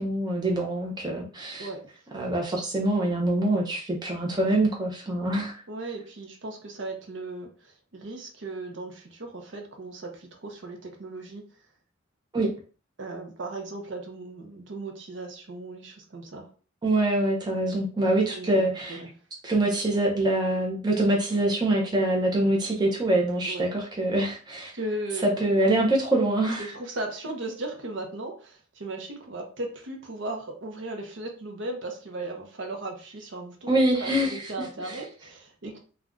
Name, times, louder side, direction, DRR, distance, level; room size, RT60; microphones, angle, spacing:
voice 1, 0.0-1.7 2.1-5.6 12.3-12.5 16.8-19.0 19.4-24.7 25.2-26.7 33.7-34.5 34.8-35.0, right 1 dB, 20° right, -1 dB, 0.5 m, -25 dB
voice 2, 5.7-11.5 13.0-16.5 18.1-19.1 23.4-23.7 24.7-25.4 26.6-33.7 34.0-35.8, right 2 dB, 60° right, 3 dB, 0.6 m, -37 dB
2.4 x 2.2 x 3.6 m, 0.38 s
head